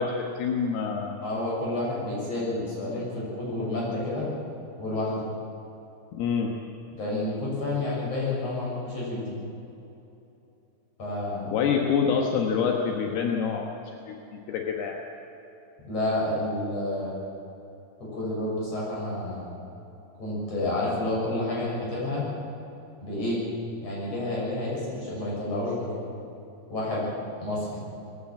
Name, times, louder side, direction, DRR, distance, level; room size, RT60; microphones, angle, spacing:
voice 1, 0.0-1.2 6.1-6.5 11.5-13.7 14.1-15.0, left 6 dB, 80° left, 1 dB, 3.3 m, -26 dB
voice 2, 1.2-4.3 4.8-5.3 7.0-9.4 11.0-11.5 15.9-17.1 18.1-19.5 20.2-22.2 23.0-23.4 23.8-26.0 26.7-27.0 27.4-27.7, left 2 dB, 40° left, -5 dB, 7.8 m, -29 dB
20.5 x 15.0 x 8.7 m, 2.9 s
omnidirectional pair, 4.5 m